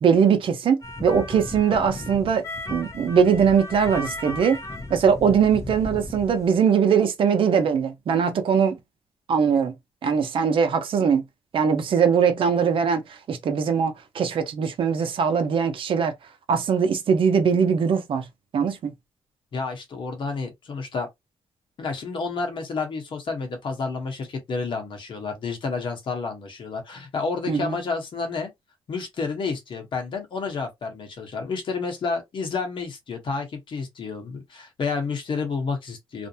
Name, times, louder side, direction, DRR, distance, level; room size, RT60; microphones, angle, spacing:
voice 1, 0.0-2.4 2.7-4.6 4.9-8.8 9.3-9.7 10.0-11.2 11.5-13.0 13.3-16.1 16.5-18.2 18.5-18.9 27.5-27.8, right 6 dB, 60° right, 0.6 m, -21 dB
sound 1, 0.8-6.5, left 2 dB, 30° left, 0.6 m, -35 dB
voice 2, 19.5-21.1 21.8-28.5 28.9-36.3, left 4 dB, 55° left, 1.0 m, -30 dB
2.5 x 2.1 x 2.7 m
cardioid pair, 120°, 10 cm